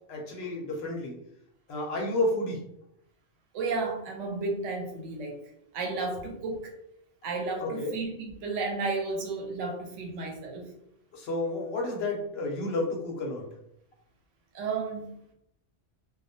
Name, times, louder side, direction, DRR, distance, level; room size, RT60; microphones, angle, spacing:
voice 1, 0.1-1.1 1.7-2.6 7.6-7.9 11.1-13.5, left 2 dB, 65° left, 0 dB, 0.7 m, -31 dB
voice 2, 3.5-5.4 5.7-6.7 7.2-10.7 14.5-15.2, right 3 dB, 85° right, 1 dB, 1.0 m, -32 dB
2.3 x 2.0 x 2.6 m, 0.76 s
omnidirectional pair, 1.2 m